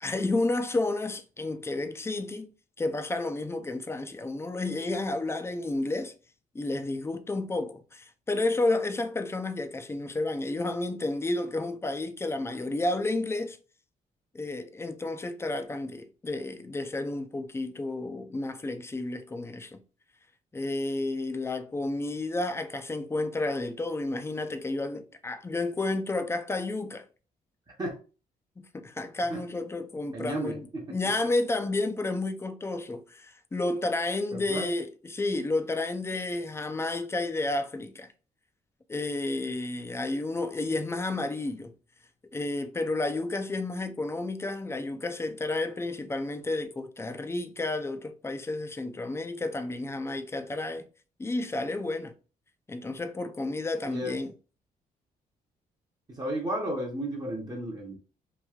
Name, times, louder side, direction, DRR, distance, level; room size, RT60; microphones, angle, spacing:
voice 1, 0.0-2.5 2.8-6.1 6.5-13.6 14.3-19.8 20.5-27.0 28.6-38.1 38.9-41.7 42.3-50.9 51.2-52.1 52.7-54.3, left 2 dB, 15° left, 0.4 m, -31 dB
voice 2, 30.1-31.0 34.3-34.7 53.9-54.2 56.1-58.0, right 1 dB, 25° right, 0.7 m, -33 dB
3.1 x 2.5 x 2.3 m
cardioid pair, 105°, 16 cm